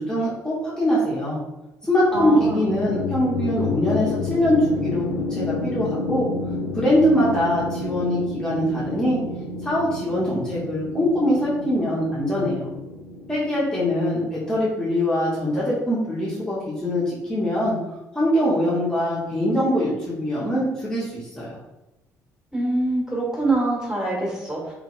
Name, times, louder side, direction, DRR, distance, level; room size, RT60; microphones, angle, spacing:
voice 1, 0.0-1.4 1.8-6.3 6.7-9.2 9.6-12.7 13.3-17.8 18.1-21.6, equal, 10° left, -8 dB, 0.9 m, -23 dB
sound 1, 2.1-14.3, left 3 dB, 80° left, 0.4 m, -30 dB
voice 2, 2.1-2.6 22.5-24.7, right 2 dB, 5° right, -5 dB, 1.3 m, -24 dB
3.0 x 2.6 x 2.4 m, 0.97 s
figure-of-eight pair, 50°, 8 cm